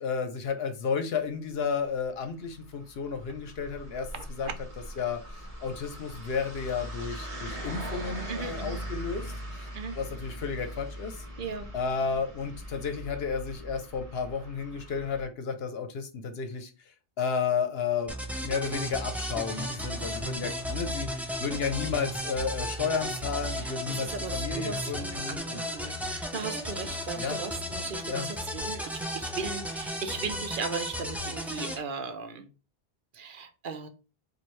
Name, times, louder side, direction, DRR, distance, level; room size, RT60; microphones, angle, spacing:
voice 1, 0.0-4.5 5.0-9.7 10.0-11.2 11.7-16.7 17.2-18.1 18.4-25.6 27.2-27.4 28.0-28.3, left 6 dB, 65° left, 0.9 m, -32 dB
sound 1, 2.0-15.3, equal, 35° right, 1.0 m, -41 dB
voice 2, 4.1-4.5 8.3-8.8 9.7-10.0 11.4-11.7 23.5-32.5 33.1-33.9, right 5 dB, 55° right, 0.8 m, -37 dB
sound 2, 18.1-31.8, equal, ahead, 0.3 m, -34 dB
4.4 x 2.6 x 3.1 m
omnidirectional pair, 1.1 m